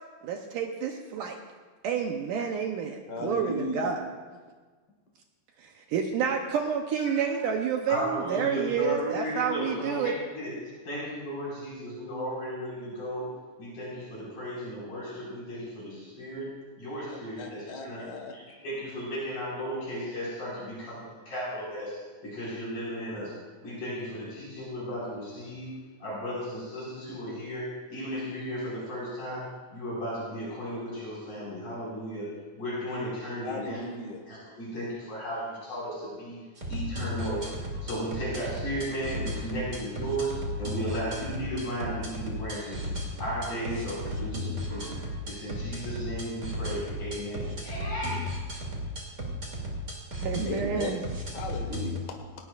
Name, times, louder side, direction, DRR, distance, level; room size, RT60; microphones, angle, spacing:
voice 1, 0.2-1.4 1.8-4.0 5.6-10.1 50.2-51.0, right 7 dB, 75° right, 3 dB, 2.0 m, -29 dB
voice 2, 3.1-3.9 17.4-18.3 33.4-34.2 50.4-51.0 51.3-52.1, left 2 dB, 75° left, 2 dB, 0.9 m, -36 dB
voice 3, 7.9-10.6 10.8-13.3 13.6-16.5 16.8-18.0 18.3-23.4 23.6-25.7 26.0-32.3 32.6-33.8 34.3-36.4 36.7-37.5 37.8-42.9 43.2-44.9 45.3-48.4, equal, 50° left, -8 dB, 6.6 m, -35 dB
sound 1, 36.6-52.0, equal, 25° right, 2.0 m, -35 dB
18.5 x 18.5 x 2.5 m, 1.4 s
omnidirectional pair, 4.6 m